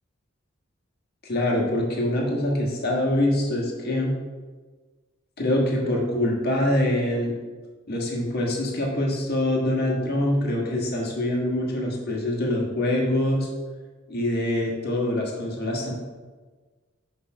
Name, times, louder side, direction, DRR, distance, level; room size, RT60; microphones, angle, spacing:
voice 1, 1.3-4.2 5.4-7.3 7.9-13.5 14.1-15.9, left 1 dB, 50° left, -2 dB, 1.6 m, -24 dB
6.4 x 5.2 x 4.9 m, 1.4 s
head